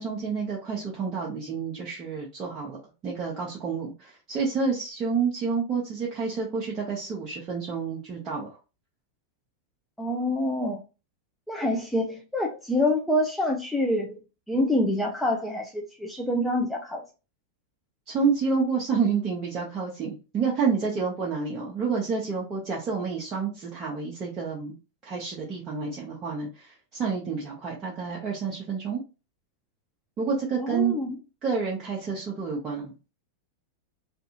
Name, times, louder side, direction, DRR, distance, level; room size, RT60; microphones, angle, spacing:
voice 1, 0.0-8.6 18.1-24.8 25.0-29.0 30.2-30.9 31.4-32.9, right 5 dB, 30° right, 0.7 m, -29 dB
voice 2, 10.0-10.8 11.5-14.2 14.5-17.0 30.6-31.2, left 1 dB, 5° left, 0.4 m, -26 dB
2.5 x 2.4 x 2.8 m
figure-of-eight pair, 90°, 0 cm